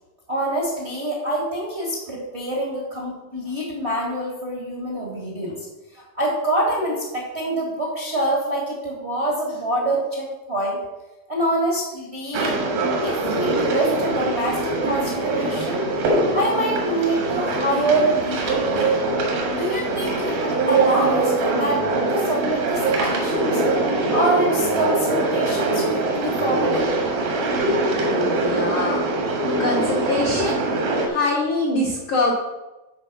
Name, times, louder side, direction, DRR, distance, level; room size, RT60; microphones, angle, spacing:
voice 1, 0.3-5.7 5.9-10.8 11.3-12.5 13.0-15.9 16.3-19.0 19.5-23.6 24.1-27.0, right 1 dB, 55° right, -3 dB, 0.7 m, -25 dB
sound 1, 12.3-31.1, right 2 dB, 80° right, 3.4 m, -22 dB
voice 2, 28.2-29.0 29.6-30.6 31.1-32.3, left 2 dB, 80° left, -2 dB, 1.1 m, -23 dB
10.0 x 4.3 x 5.9 m, 1.1 s
omnidirectional pair, 4.2 m